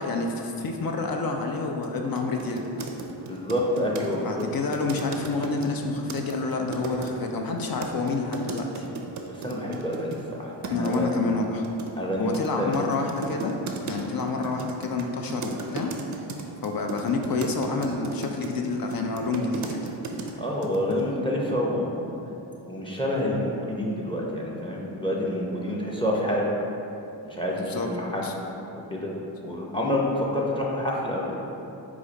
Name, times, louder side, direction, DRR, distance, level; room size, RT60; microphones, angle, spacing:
voice 1, 0.0-2.9 4.2-8.8 10.7-11.7 12.2-13.5 13.9-15.9 16.6-19.9 27.6-27.9 28.2-28.3, left 3 dB, 50° left, 3 dB, 0.5 m, -28 dB
sound 1, 1.8-1.9 2.2-7.1 7.8-10.2 10.6-11.0 11.6-20.3 20.6-21.1, right 4 dB, 40° right, 0.5 m, -36 dB
voice 2, 3.3-4.5 9.3-11.1 12.0-12.7 20.4-22.1 22.7-26.5 27.2-28.3 28.7-29.1 29.4-31.4, left 1 dB, 10° left, -3 dB, 0.6 m, -28 dB
4.8 x 2.4 x 3.9 m, 2.9 s
cardioid pair, 65°, 45 cm